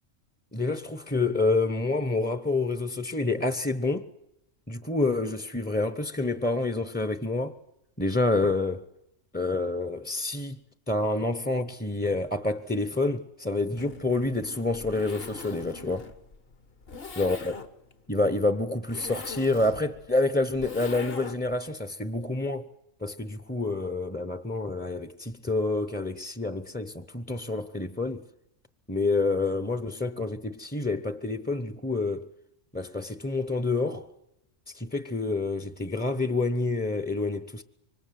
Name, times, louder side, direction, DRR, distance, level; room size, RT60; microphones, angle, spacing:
voice 1, 0.5-4.1 4.7-7.5 8.0-8.9 9.3-10.6 10.9-16.1 17.2-17.5 18.1-22.7 23.0-28.3 28.9-32.3 32.7-34.1 34.7-37.6, left 2 dB, 10° left, 0.8 m, -28 dB
Zipper (clothing), 13.6-21.6, left 4 dB, 50° left, 1.6 m, -42 dB
26.5 x 24.5 x 7.7 m
omnidirectional pair, 1.3 m